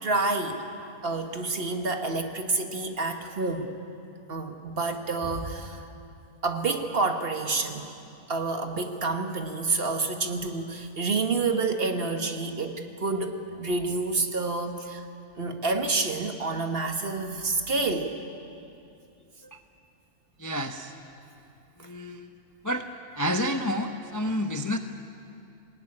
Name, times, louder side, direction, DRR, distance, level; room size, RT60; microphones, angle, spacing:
voice 1, 0.0-3.7 4.3-5.9 6.4-7.9 8.3-15.0 15.4-18.1 21.8-21.9, right 3 dB, 40° right, 5 dB, 1.5 m, -28 dB
voice 2, 20.4-20.9 21.8-22.3 22.6-22.9 23.1-24.8, equal, 20° left, 5 dB, 0.6 m, -29 dB
19.0 x 18.5 x 9.8 m, 2.6 s
omnidirectional pair, 1.6 m